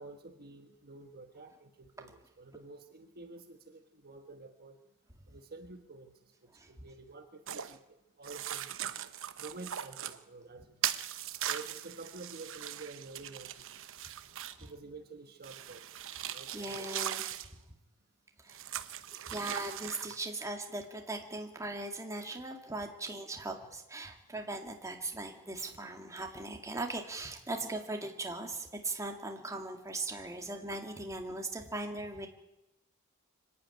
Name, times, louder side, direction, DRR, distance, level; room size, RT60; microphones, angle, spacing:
voice 1, 0.0-4.8 5.3-6.1 6.7-8.7 9.4-10.9 11.5-13.8 14.6-15.8 16.3-16.9 20.0-20.2, right 3 dB, 45° right, 5 dB, 1.4 m, -49 dB
sound 1, 7.5-7.7 8.2-10.2 10.8-14.7 15.4-17.5 18.5-20.2, right 11 dB, 65° right, 1.0 m, -39 dB
voice 2, 16.5-17.2 18.4-18.6 19.3-32.3, right 2 dB, 15° right, 3 dB, 2.3 m, -39 dB
25.0 x 11.0 x 9.3 m, 0.92 s
head